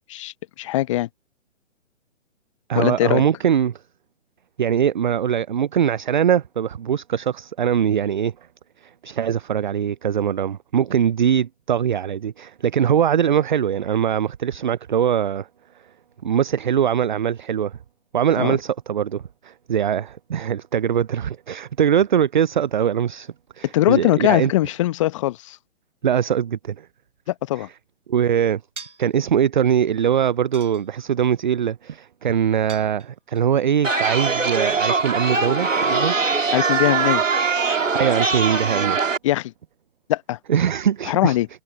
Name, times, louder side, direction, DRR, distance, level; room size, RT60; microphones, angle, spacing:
voice 1, 0.1-1.1 2.7-3.2 18.4-18.6 23.6-25.6 27.3-27.7 36.5-37.2 39.2-39.5 40.1-40.4 41.1-41.5, left 15 dB, 25° left, 0.9 m, -21 dB
voice 2, 2.7-3.8 4.6-8.3 8.8-15.5 16.2-17.8 18.1-24.5 26.0-26.9 28.1-28.6 29.0-36.2 37.9-39.0 40.5-41.4, right 8 dB, 40° right, 0.5 m, -22 dB
sound 1, 28.8-29.2 30.5-31.2 32.7-33.4, right 5 dB, 70° right, 6.2 m, -41 dB
Chatter, 33.8-39.2, right 4 dB, 85° right, 2.2 m, -21 dB
figure-of-eight pair, 135°, 37 cm